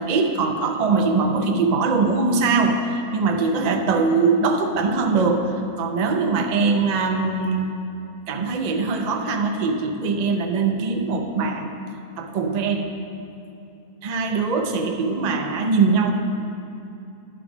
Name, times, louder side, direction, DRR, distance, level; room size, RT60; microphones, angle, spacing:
voice 1, 0.0-7.7 8.3-11.7 12.2-12.9 14.0-16.1, right 4 dB, 90° right, 4 dB, 0.3 m, -22 dB
10.5 x 5.1 x 5.0 m, 2.8 s
omnidirectional pair, 1.6 m